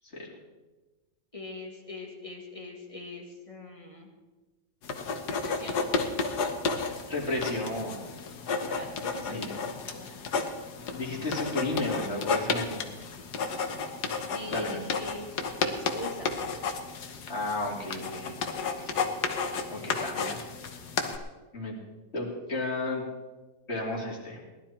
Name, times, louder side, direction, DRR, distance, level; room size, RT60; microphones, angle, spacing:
voice 1, 1.3-4.1 5.3-5.9 8.5-10.1 14.3-15.3 15.6-16.3 19.8-20.3, left 2 dB, 20° left, 0 dB, 2.1 m, -42 dB
sound 1, 4.8-21.2, left 4 dB, 65° left, 1.7 m, -32 dB
voice 2, 6.8-8.1 9.3-9.6 10.8-13.1 14.5-14.8 17.3-19.0 19.7-20.3 21.5-21.8 22.1-23.0 23.7-24.4, left 2 dB, 35° left, -2 dB, 3.2 m, -33 dB
18.5 x 12.0 x 4.4 m, 1.2 s
omnidirectional pair, 1.9 m